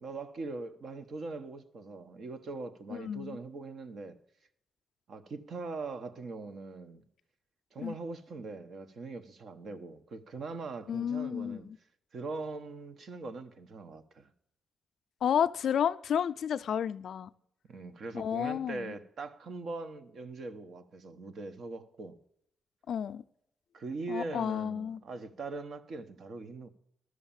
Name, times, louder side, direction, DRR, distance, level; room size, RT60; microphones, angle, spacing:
voice 1, 0.0-4.2 5.1-7.0 7.7-11.7 12.1-14.3 17.7-22.2 23.7-26.7, right 3 dB, 55° right, 1.0 m, -41 dB
voice 2, 2.9-3.4 7.8-7.9 10.9-11.8 15.2-17.3 18.1-18.9 22.9-23.2 24.1-25.0, left 8 dB, 65° left, 0.4 m, -31 dB
12.5 x 6.5 x 7.2 m
cardioid pair, 130°, 0 cm